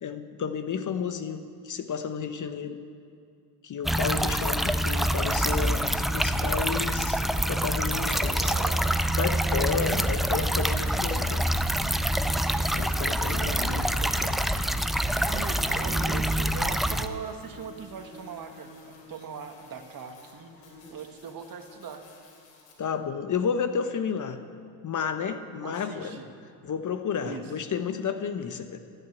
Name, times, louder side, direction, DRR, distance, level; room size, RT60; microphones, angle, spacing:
voice 1, 0.0-2.8 3.6-7.2 7.5-8.5 9.2-11.4 12.8-13.8 22.8-24.4 24.8-26.2 26.6-28.8, left 6 dB, 35° left, 9 dB, 1.0 m, -31 dB
sound 1, 3.8-17.1, right 1 dB, ahead, 0.5 m, -26 dB
voice 2, 7.7-8.8 13.0-14.4 15.2-22.1 25.6-26.3 27.2-27.4, right 6 dB, 40° right, 6 dB, 1.8 m, -40 dB
sound 2, 8.0-22.7, left 2 dB, 80° left, 3.5 m, -52 dB
15.0 x 9.2 x 8.4 m, 2.4 s
supercardioid pair, 80°, 50 cm